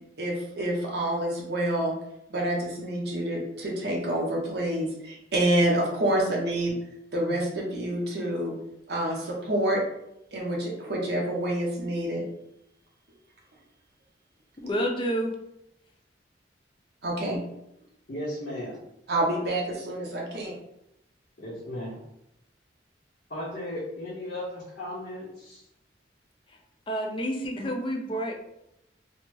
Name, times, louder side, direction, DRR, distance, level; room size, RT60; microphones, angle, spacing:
voice 1, 0.2-1.9 2.3-6.7 7.1-8.5 8.9-9.8 10.3-12.2 17.0-17.4 19.1-20.5, right 1 dB, 60° right, -2 dB, 0.8 m, -27 dB
voice 2, 14.6-15.3 26.9-28.5, equal, 25° left, 2 dB, 0.4 m, -29 dB
voice 3, 18.1-18.8 20.3-20.4 21.4-22.0 23.3-25.6, left 1 dB, 55° left, -8 dB, 0.7 m, -36 dB
3.2 x 2.0 x 3.2 m, 0.83 s
head